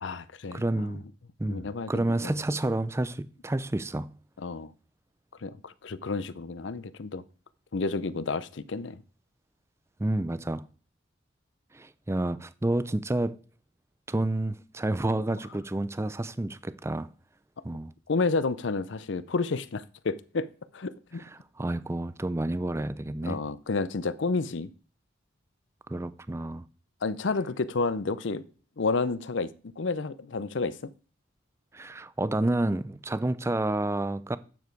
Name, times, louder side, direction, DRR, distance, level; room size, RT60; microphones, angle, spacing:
voice 1, 0.0-1.0 1.5-2.4 4.4-4.7 5.4-7.2 7.7-9.0 15.3-15.4 18.1-20.5 20.7-21.2 23.2-24.7 27.0-28.4 28.8-30.9, left 3 dB, 65° left, 0.6 m, -30 dB
voice 2, 0.5-1.0 1.4-4.1 10.0-10.7 11.7-13.4 14.1-17.1 17.6-17.9 21.2-21.3 21.6-23.4 25.9-26.6 31.7-34.4, right 1 dB, 15° right, 0.4 m, -29 dB
9.3 x 7.1 x 4.6 m
head